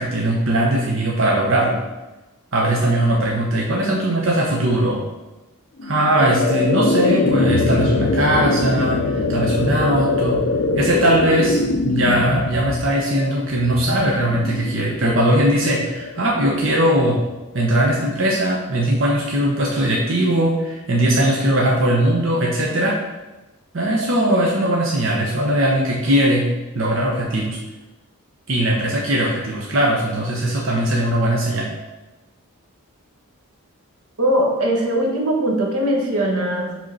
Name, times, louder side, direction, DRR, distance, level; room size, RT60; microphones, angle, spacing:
voice 1, 0.0-1.8 2.5-5.0 5.8-10.4 10.7-17.2 17.5-23.0 23.7-26.5 26.7-27.6 28.5-31.7, right 1 dB, 60° right, -2 dB, 0.9 m, -19 dB
sound 1, 5.8-16.9, left 2 dB, 50° left, 0.5 m, -22 dB
voice 2, 34.2-36.8, right 1 dB, 85° right, 0 dB, 1.3 m, -20 dB
5.1 x 3.7 x 5.4 m, 1.1 s
head